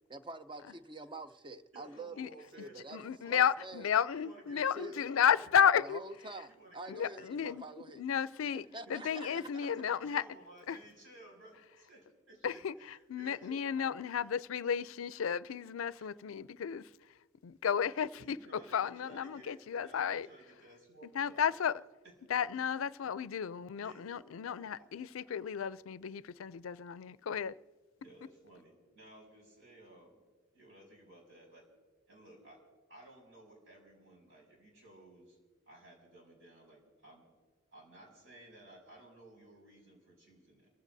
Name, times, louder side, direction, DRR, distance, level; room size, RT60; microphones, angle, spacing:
voice 1, 0.1-3.0 3.3-3.8 4.5-5.1 5.8-8.0 8.7-9.4, right 2 dB, 25° right, 0.6 m, -46 dB
voice 2, 1.7-3.4 4.1-5.5 6.5-7.6 8.8-12.6 12.9-13.9 16.0-16.1 18.2-21.6 22.5-22.6 23.8-24.9 28.0-30.2 30.5-31.7 32.1-32.6 32.9-35.4 35.7-37.3 37.7-40.7, right 1 dB, 70° right, 6.0 m, -56 dB
voice 3, 2.9-6.0 6.9-7.6 8.0-10.2 10.7-10.8 12.4-17.2 17.4-20.3 21.0-21.8 22.3-27.6, left 8 dB, 80° left, 0.4 m, -33 dB
29.5 x 15.5 x 2.7 m
head